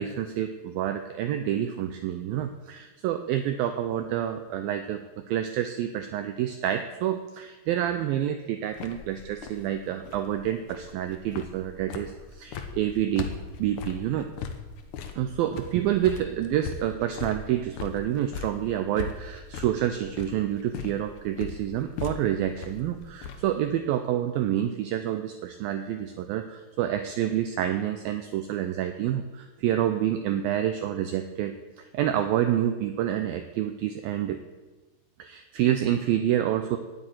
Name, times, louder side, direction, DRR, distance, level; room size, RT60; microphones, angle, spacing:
voice 1, 0.0-13.3 13.6-14.3 15.2-34.4 35.2-36.8, right 11 dB, 90° right, 7 dB, 2.0 m, -28 dB
sound 1, 8.7-23.6, left 6 dB, 85° left, 1.7 m, -40 dB
9.5 x 8.6 x 9.2 m, 1.2 s
omnidirectional pair, 5.0 m